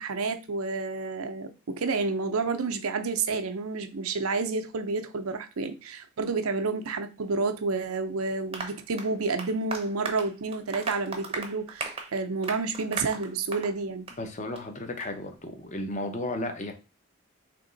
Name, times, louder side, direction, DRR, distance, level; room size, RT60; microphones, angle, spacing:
voice 1, 0.0-14.1, right 4 dB, 90° right, 0.6 m, -30 dB
Applause, 8.5-13.8 14.1-14.2 14.6-14.7 15.0-15.1, right 4 dB, 25° right, 0.6 m, -37 dB
voice 2, 14.2-16.7, left 1 dB, 35° left, 0.7 m, -34 dB
3.4 x 2.9 x 3.9 m
head